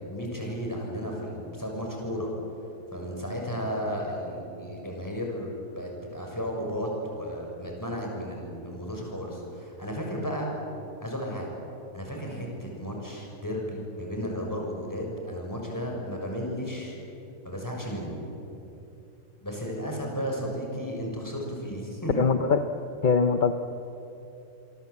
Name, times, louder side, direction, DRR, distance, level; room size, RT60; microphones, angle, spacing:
voice 1, 0.0-2.3 2.9-10.5 11.0-11.5 11.9-17.0 17.4-18.2 19.4-22.2, equal, 10° left, -1 dB, 6.5 m, -34 dB
voice 2, 22.1-22.7 23.0-23.5, left 5 dB, 40° left, 7 dB, 0.9 m, -22 dB
27.5 x 23.5 x 8.5 m, 2.9 s
omnidirectional pair, 1.7 m